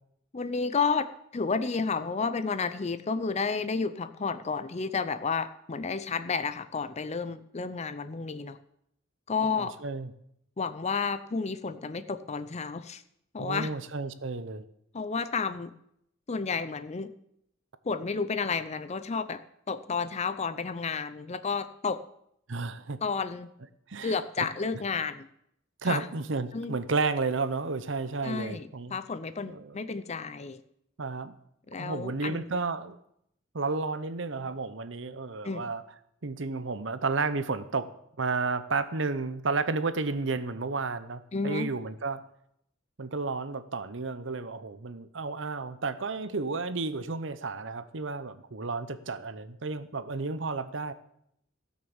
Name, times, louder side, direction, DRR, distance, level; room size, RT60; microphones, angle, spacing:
voice 1, 0.3-8.6 9.3-9.8 10.6-13.0 13.3-13.7 14.9-15.7 16.3-17.1 17.8-19.4 19.7-22.0 23.0-23.5 24.0-25.3 25.8-26.0 26.5-26.7 28.2-30.6 31.7-32.5 35.4-35.6 41.3-41.7, left 5 dB, 35° left, 12 dB, 0.5 m, -31 dB
voice 2, 9.6-10.1 13.4-14.6 22.5-23.0 23.9-24.2 25.8-29.0 29.5-29.8 31.0-31.3 31.8-33.0 33.5-35.8 36.2-37.9 38.2-42.2 43.0-50.9, right 3 dB, 65° right, 13 dB, 0.8 m, -32 dB
16.0 x 6.4 x 7.2 m, 0.74 s
head